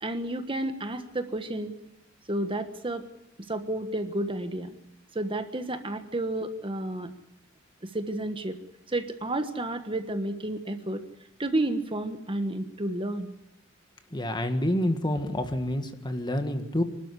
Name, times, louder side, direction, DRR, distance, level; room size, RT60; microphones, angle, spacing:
voice 1, 0.0-1.7 2.3-3.0 3.5-4.7 5.1-7.1 7.8-8.6 8.9-11.0 11.4-13.3, right 1 dB, 25° right, 8 dB, 1.4 m, -31 dB
voice 2, 14.1-16.8, left 1 dB, 25° left, 7 dB, 1.7 m, -28 dB
25.0 x 12.5 x 9.9 m, 0.88 s
head